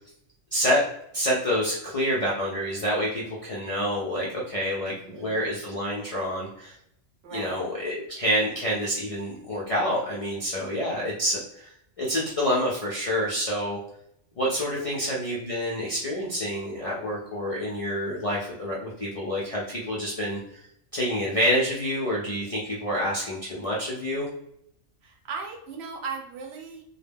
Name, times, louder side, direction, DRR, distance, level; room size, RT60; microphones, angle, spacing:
voice 1, 0.5-0.8 1.1-6.8 7.3-11.7 12.0-13.8 14.4-20.4 20.9-24.3, equal, 55° left, -5 dB, 0.4 m, -27 dB
voice 2, 4.9-5.4 7.2-7.6 14.8-15.1 25.0-26.8, right 5 dB, 70° right, 2 dB, 0.8 m, -38 dB
2.2 x 2.1 x 3.3 m, 0.74 s
omnidirectional pair, 1.2 m